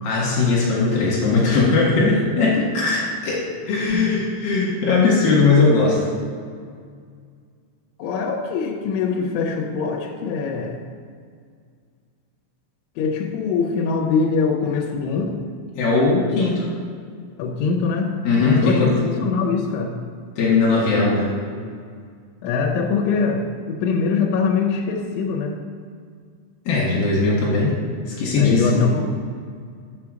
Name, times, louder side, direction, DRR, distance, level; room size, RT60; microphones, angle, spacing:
voice 1, 0.0-6.0 15.7-16.7 18.2-19.0 20.4-21.3 26.7-27.7 28.1-28.9, left 3 dB, 60° left, -5 dB, 2.8 m, -19 dB
voice 2, 3.9-4.3 8.0-10.8 13.0-15.4 17.4-18.2 18.6-19.9 22.4-25.6 28.4-29.0, left 5 dB, 75° left, 0 dB, 3.0 m, -23 dB
6.7 x 6.0 x 6.2 m, 2.1 s
omnidirectional pair, 5.9 m